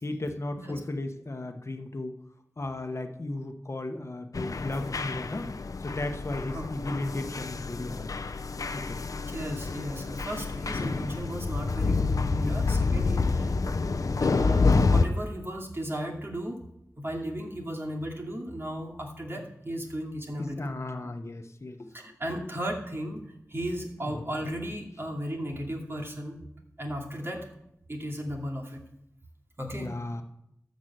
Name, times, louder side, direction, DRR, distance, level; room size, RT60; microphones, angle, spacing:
voice 1, 0.0-2.1 2.6-5.5 5.8-8.1 8.7-9.0 12.4-12.5 12.9-13.3 20.4-22.2 24.1-24.2 29.7-30.2, left 2 dB, 50° left, 5 dB, 1.0 m, -35 dB
sound 1, 4.3-15.1, left 4 dB, 80° left, 0.6 m, -28 dB
voice 2, 9.3-13.5 14.2-16.6 17.0-20.7 21.9-23.2 23.5-26.4 26.8-27.4 27.9-28.8 29.6-29.9, equal, 40° right, 0 dB, 2.5 m, -35 dB
13.0 x 5.4 x 7.6 m, 0.79 s
wide cardioid pair, 70°, 6 cm